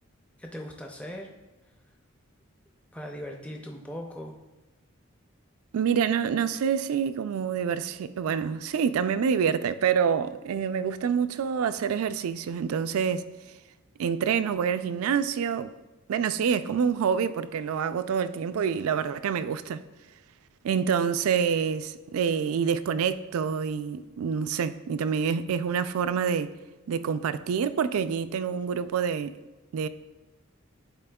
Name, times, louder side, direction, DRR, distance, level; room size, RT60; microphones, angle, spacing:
voice 1, 0.4-1.3 2.9-4.4, equal, 5° left, 0.4 m, -39 dB
voice 2, 5.7-13.2 14.0-15.7 16.1-19.8 20.6-26.5 26.9-29.3 29.7-29.9, right 7 dB, 85° right, 0.3 m, -27 dB
10.5 x 4.3 x 2.3 m
head